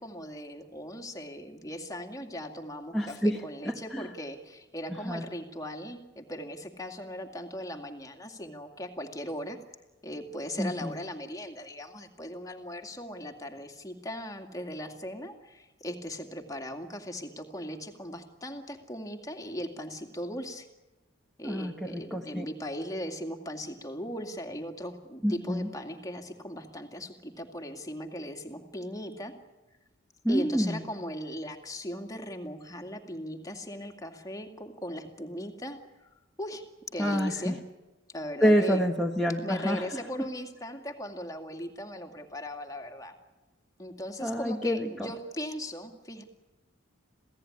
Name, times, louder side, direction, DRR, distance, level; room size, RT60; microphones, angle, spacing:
voice 1, 0.0-9.6 10.0-20.7 21.4-29.3 30.3-35.8 36.4-36.6 36.9-37.6 38.1-38.8 39.4-43.1 43.8-46.2, equal, 15° left, 4 dB, 2.2 m, -38 dB
voice 2, 2.9-3.4 3.6-4.1 4.9-5.2 10.6-11.0 21.4-22.5 25.2-25.7 30.2-30.8 37.0-37.6 38.4-39.9 44.2-44.9, equal, ahead, -2 dB, 1.4 m, -27 dB
27.0 x 17.0 x 9.8 m, 1.1 s
head